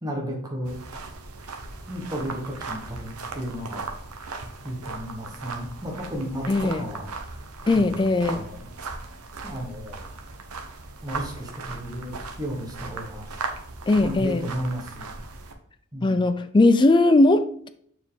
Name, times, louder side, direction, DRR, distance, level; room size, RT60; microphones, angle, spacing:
voice 1, 0.0-0.8 1.9-3.9 4.6-7.1 7.7-8.7 9.4-10.0 11.0-13.4 14.0-15.1 15.9-16.2, equal, 15° right, 1.3 m, -34 dB
sound 1, 0.6-15.5, right 3 dB, 90° right, 1.0 m, -37 dB
voice 2, 6.5-6.8 7.7-8.5 13.9-14.4 16.0-17.7, left 2 dB, 20° left, 0.3 m, -19 dB
6.9 x 4.7 x 3.7 m
head